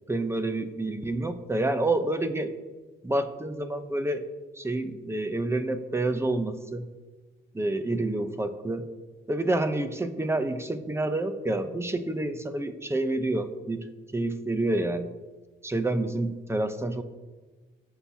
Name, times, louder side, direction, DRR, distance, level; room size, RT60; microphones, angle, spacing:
voice 1, 0.1-2.5 3.0-4.2 4.6-6.9 7.5-8.9 9.3-13.9 14.1-15.1 15.6-17.0, right 2 dB, 15° right, 9 dB, 0.7 m, -28 dB
16.0 x 5.8 x 2.8 m, 1.3 s
cardioid pair, 90°, 20 cm